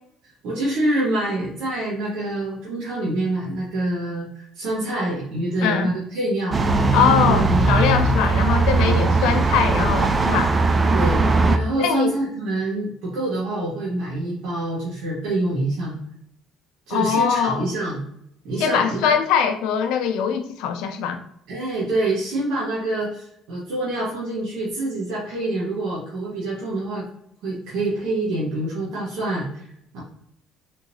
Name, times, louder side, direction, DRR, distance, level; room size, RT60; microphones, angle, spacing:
voice 1, 0.4-6.6 7.2-7.7 8.8-9.2 10.9-11.2 11.5-16.0 16.9-18.0 18.4-19.1 21.5-27.0 27.4-29.7 29.9-30.0, right 2 dB, 75° right, -6 dB, 1.2 m, -26 dB
sound 1, 6.5-11.6, right 3 dB, 25° right, 0.3 m, -19 dB
voice 2, 6.9-10.5 11.8-12.1 16.9-17.6 18.6-21.2, left 7 dB, 80° left, 6 dB, 0.5 m, -22 dB
3.6 x 2.9 x 2.6 m, 0.73 s
cardioid pair, 105°, 0 cm